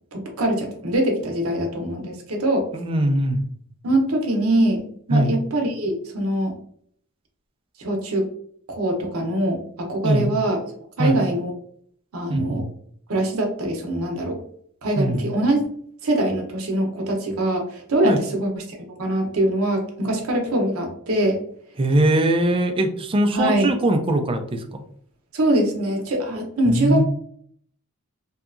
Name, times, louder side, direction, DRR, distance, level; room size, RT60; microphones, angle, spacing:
voice 1, 0.1-2.7 3.8-6.5 7.8-8.3 8.7-10.7 11.0-11.5 12.1-12.7 13.1-14.4 14.8-15.6 16.0-21.4 23.3-23.7 25.3-27.1, right 1 dB, 80° right, 2 dB, 0.7 m, -23 dB
voice 2, 2.7-3.4 5.1-5.3 10.0-10.3 11.0-11.2 12.3-12.7 15.0-15.3 18.0-18.2 21.8-24.8 26.7-27.0, right 1 dB, 25° right, 6 dB, 0.3 m, -21 dB
2.7 x 2.3 x 2.4 m, 0.62 s
head